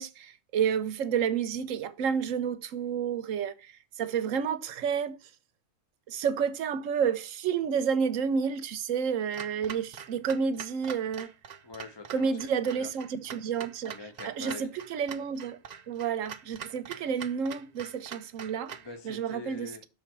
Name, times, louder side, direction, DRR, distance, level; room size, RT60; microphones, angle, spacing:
voice 1, 0.0-3.7 4.0-5.2 6.1-11.3 12.1-13.9 14.2-15.6 15.9-18.7 19.0-19.7, right 7 dB, 90° right, 1.1 m, -30 dB
Clock, 9.3-18.9, right 7 dB, 50° right, 0.5 m, -44 dB
voice 2, 11.6-12.9 13.8-14.7 18.7-19.9, left 3 dB, 20° left, 0.9 m, -44 dB
6.3 x 4.4 x 5.9 m
omnidirectional pair, 1.3 m